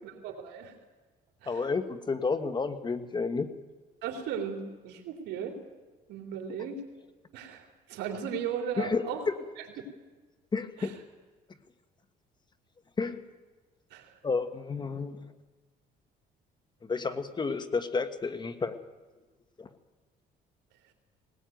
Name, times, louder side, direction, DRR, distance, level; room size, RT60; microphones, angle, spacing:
voice 1, 0.0-0.8 1.4-1.7 4.0-5.6 6.1-6.8 7.3-9.2 10.8-10.9 13.9-14.2, right 7 dB, 85° right, 4 dB, 3.2 m, -36 dB
voice 2, 1.5-3.5 8.8-9.0 10.5-11.0 13.0-13.2 14.2-15.2 16.8-18.8 19.6-19.7, left 4 dB, 25° left, 10 dB, 1.4 m, -31 dB
19.5 x 19.0 x 9.2 m, 1.3 s
cardioid pair, 110°, 17 cm